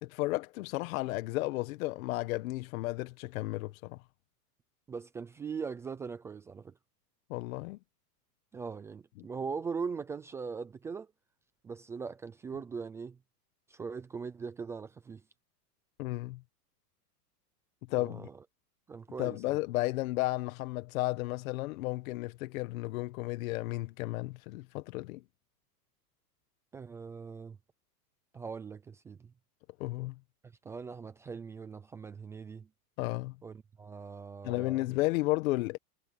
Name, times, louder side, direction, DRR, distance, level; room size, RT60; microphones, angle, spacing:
voice 1, 0.0-4.0 7.3-7.8 16.0-16.4 17.9-18.3 19.2-25.2 29.8-30.1 33.0-33.3 34.4-35.8, left 19 dB, 55° left, 1.4 m, -33 dB
voice 2, 4.9-6.7 8.5-11.1 11.6-13.2 13.7-15.2 17.9-18.4 18.9-19.6 26.7-27.6 28.3-29.3 30.6-32.7 33.4-34.8, right 5 dB, 5° right, 0.3 m, -40 dB
hypercardioid pair, 135°, 48 cm